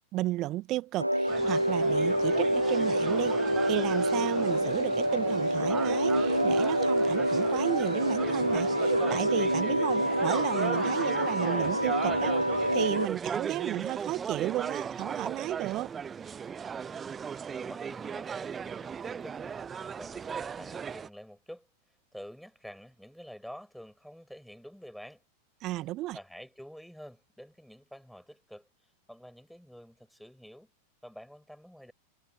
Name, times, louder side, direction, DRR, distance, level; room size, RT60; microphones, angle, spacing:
voice 1, 0.1-15.9 25.6-26.2, right 17 dB, 35° right, 2.0 m, -34 dB
sound 1, 1.0-13.1, equal, 90° right, 0.6 m, -27 dB
sound 2, 1.3-21.1, right 7 dB, 20° right, 0.6 m, -37 dB
voice 2, 17.6-21.7 22.1-25.2 26.1-30.7 31.0-31.9, equal, ahead, 7.9 m, -48 dB
figure-of-eight pair, 90°, 0 cm